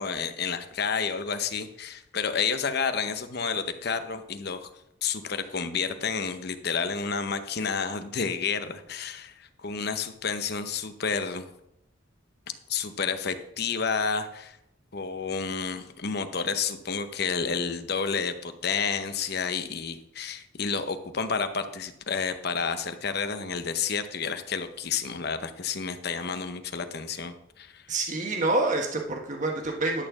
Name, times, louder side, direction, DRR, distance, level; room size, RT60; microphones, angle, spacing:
voice 1, 0.0-4.7 5.0-11.4 12.7-14.6 14.9-27.8, left 5 dB, 55° left, 9 dB, 0.8 m, -30 dB
voice 2, 27.9-30.1, right 2 dB, 40° right, 1 dB, 1.4 m, -27 dB
11.5 x 4.4 x 7.2 m, 0.82 s
head